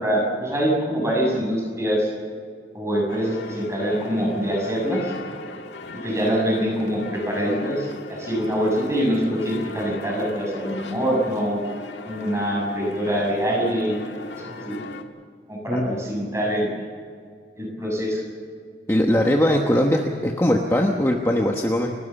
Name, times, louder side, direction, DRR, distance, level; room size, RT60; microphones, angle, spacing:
voice 1, 0.0-2.1 2.7-5.1 6.0-11.6 12.0-14.0 14.4-14.7 15.5-16.7 17.5-18.2, equal, 15° right, -2 dB, 6.6 m, -24 dB
sound 1, 3.1-15.0, left 2 dB, 85° left, 1.7 m, -37 dB
voice 2, 18.9-21.9, left 1 dB, 15° left, 1 dB, 1.1 m, -20 dB
29.5 x 13.0 x 7.1 m, 2.1 s
head